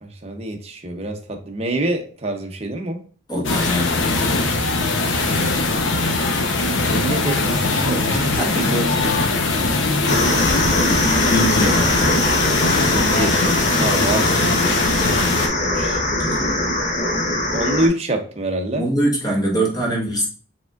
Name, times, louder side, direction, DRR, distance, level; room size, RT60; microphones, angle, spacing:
voice 1, 0.0-3.0 5.0-5.2 6.4-9.4 10.5-10.8 12.9-14.8 15.1-16.0 17.5-18.8, right 1 dB, 35° right, 0.7 m, -26 dB
voice 2, 3.3-4.0 8.4-8.7 11.3-12.2 13.7-13.9 16.1-16.4 18.8-20.3, equal, 20° left, 1.3 m, -23 dB
sound 1, 3.4-15.5, left 3 dB, 85° left, 0.8 m, -21 dB
sound 2, 10.1-17.9, left 1 dB, 40° left, 0.9 m, -21 dB
4.7 x 3.6 x 2.4 m
head